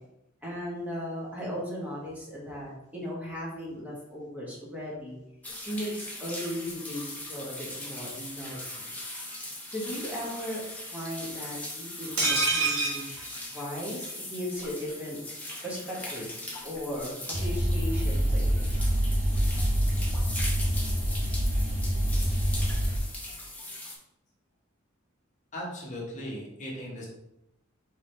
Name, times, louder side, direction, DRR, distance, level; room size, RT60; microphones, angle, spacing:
voice 1, 0.4-5.2 5.7-8.9 9.7-10.6 10.9-13.2 13.5-15.2 15.6-16.3 16.6-18.6, equal, 10° right, -5 dB, 1.2 m, -37 dB
sound 1, 5.4-24.0, left 1 dB, 10° left, 0.8 m, -40 dB
sound 2, 12.2-14.1 14.4-14.5 14.8-14.9, right 3 dB, 80° right, 1.4 m, -28 dB
sound 3, 17.3-23.0, equal, 40° right, 0.6 m, -26 dB
voice 2, 25.5-27.1, equal, 40° left, -3 dB, 1.1 m, -37 dB
4.4 x 3.6 x 3.2 m, 0.87 s
head